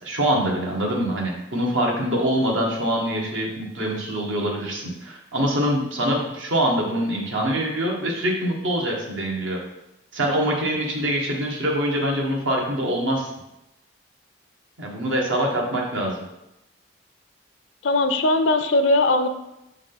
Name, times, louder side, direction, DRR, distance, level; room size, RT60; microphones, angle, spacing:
voice 1, 0.0-9.6 10.1-13.3 14.8-16.2, right 1 dB, 80° right, -1 dB, 1.3 m, -24 dB
voice 2, 17.8-19.3, left 2 dB, 70° left, 9 dB, 0.4 m, -19 dB
6.6 x 3.7 x 3.9 m, 0.89 s
head